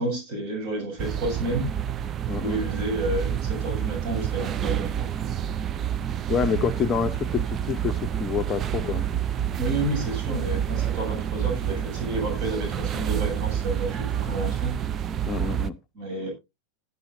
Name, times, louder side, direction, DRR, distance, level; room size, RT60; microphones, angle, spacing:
voice 1, 0.0-1.7 2.4-5.1 9.6-14.8 15.9-16.3, right 1 dB, 40° right, 7.1 m, -30 dB
sound 1, 1.0-15.7, right 10 dB, 25° right, 0.5 m, -28 dB
voice 2, 2.3-2.6 6.3-9.0 15.3-15.8, left 6 dB, 25° left, 0.7 m, -27 dB
17.5 x 7.7 x 2.6 m
figure-of-eight pair, 90°, 0 cm